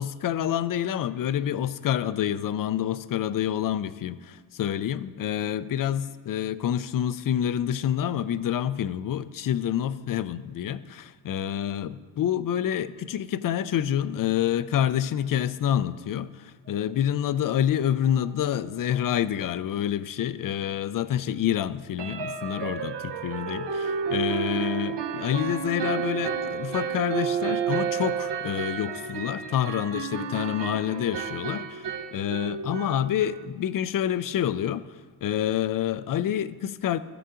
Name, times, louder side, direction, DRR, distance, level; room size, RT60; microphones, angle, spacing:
voice 1, 0.0-31.8 32.1-34.8 35.2-37.0, left 10 dB, 45° left, 0.5 m, -27 dB
sound 1, 18.0-18.1 18.5-18.7 19.0-19.1 22.0-33.4, right 6 dB, 60° right, 0.9 m, -31 dB
14.0 x 6.8 x 3.7 m
cardioid pair, 75°, 48 cm